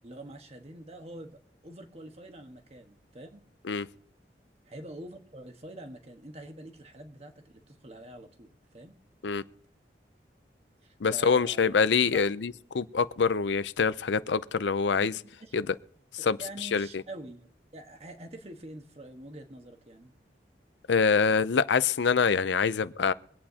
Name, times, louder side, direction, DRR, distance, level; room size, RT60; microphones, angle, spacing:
voice 1, 0.0-3.5 4.6-9.0 10.8-12.2 15.0-15.6 16.2-20.1, right 1 dB, 35° right, 1.4 m, -46 dB
voice 2, 11.0-15.1 15.5-15.7 16.2-16.9 20.9-23.1, left 5 dB, 85° left, 0.5 m, -25 dB
24.0 x 8.7 x 2.8 m
head